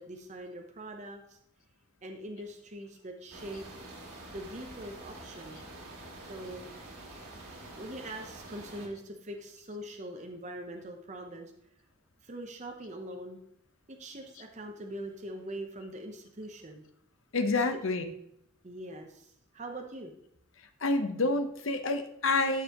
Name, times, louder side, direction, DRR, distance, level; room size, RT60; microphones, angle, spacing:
voice 1, 0.0-1.4 2.0-3.7 4.3-5.6 6.2-6.7 7.8-11.5 12.2-13.4 13.9-16.8 17.6-17.8 18.6-20.1, right 1 dB, 35° right, 3 dB, 0.7 m, -42 dB
sound 1, 3.3-8.9, right 2 dB, 90° right, 2.3 m, -47 dB
voice 2, 17.3-18.0 20.8-22.6, left 3 dB, 65° left, 7 dB, 0.9 m, -28 dB
12.5 x 5.5 x 3.0 m, 0.77 s
head